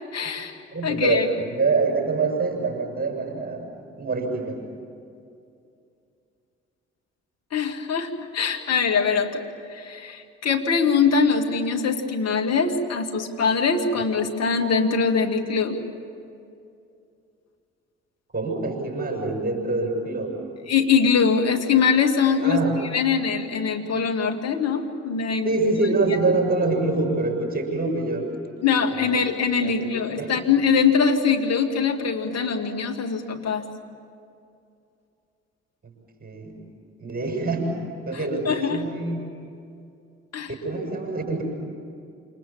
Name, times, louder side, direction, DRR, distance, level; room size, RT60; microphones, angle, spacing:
voice 1, 0.1-0.5 0.8-1.3 7.5-15.8 20.7-22.6 22.9-25.5 26.1-26.2 28.6-33.7 38.5-38.8 40.3-40.5, left 5 dB, 50° left, 3 dB, 2.4 m, -22 dB
voice 2, 0.7-3.7 4.0-4.6 18.3-20.4 22.4-22.8 25.4-28.3 28.9-29.2 29.6-30.3 35.8-35.9 36.2-36.7 37.0-37.7 38.1-39.3 40.5-41.4, right 3 dB, 25° right, 2 dB, 7.2 m, -25 dB
28.0 x 27.5 x 7.4 m, 2.5 s
figure-of-eight pair, 40°, 34 cm